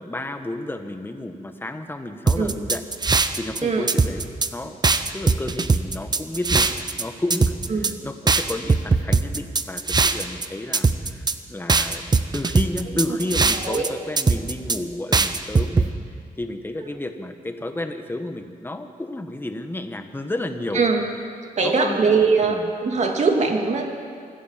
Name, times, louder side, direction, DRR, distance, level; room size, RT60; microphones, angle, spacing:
voice 1, 0.0-4.8 5.1-6.7 7.0-12.0 12.3-15.9 16.4-20.8 21.6-22.1 22.4-22.7, left 1 dB, 15° left, 7 dB, 1.5 m, -31 dB
sound 1, 2.3-3.6 3.9-4.5 4.8-7.0 7.3-7.9 8.3-10.5 10.7-11.3 11.7-13.9 14.2-14.8 15.1-15.9, right 4 dB, 30° right, 0.9 m, -20 dB
voice 2, 21.6-23.9, right 4 dB, 50° right, 2 dB, 2.7 m, -21 dB
24.0 x 14.5 x 7.5 m, 2.3 s
cardioid pair, 105°, 15 cm